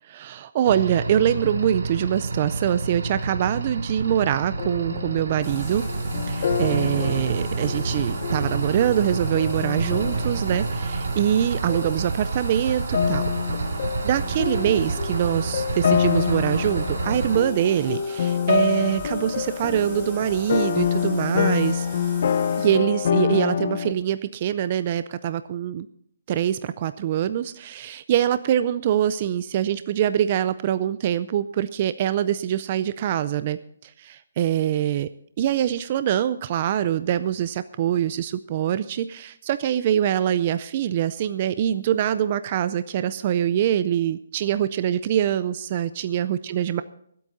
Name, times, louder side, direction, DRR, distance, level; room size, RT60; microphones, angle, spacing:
voice 1, 0.1-5.8 6.3-13.2 14.0-21.9 22.6-25.9 26.3-35.1 35.4-46.8, right 10 dB, 30° right, 13 dB, 0.4 m, -24 dB
sound 1, 0.6-17.4, right 3 dB, 85° right, 2.0 m, -29 dB
sound 2, 4.6-11.4 11.7-12.0 12.9-23.9, left 7 dB, 45° left, 0.7 m, -27 dB
Bathtub (filling or washing), 5.4-22.7, equal, 5° right, 3.7 m, -42 dB
23.5 x 8.5 x 4.0 m, 0.69 s
hypercardioid pair, 170°, 0 cm